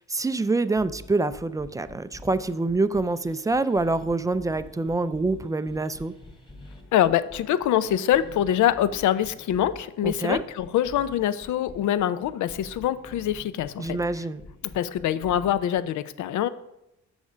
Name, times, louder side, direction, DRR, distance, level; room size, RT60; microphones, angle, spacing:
voice 1, 0.0-6.1 10.0-10.4 13.8-14.4, right 3 dB, 10° right, 13 dB, 0.3 m, -26 dB
sound 1, 0.7-15.8, left 2 dB, 15° left, 1.6 m, -47 dB
voice 2, 6.9-14.0 14.7-16.5, left 11 dB, 75° left, 14 dB, 0.6 m, -24 dB
7.1 x 6.3 x 5.0 m, 0.87 s
cardioid pair, 90°, 30 cm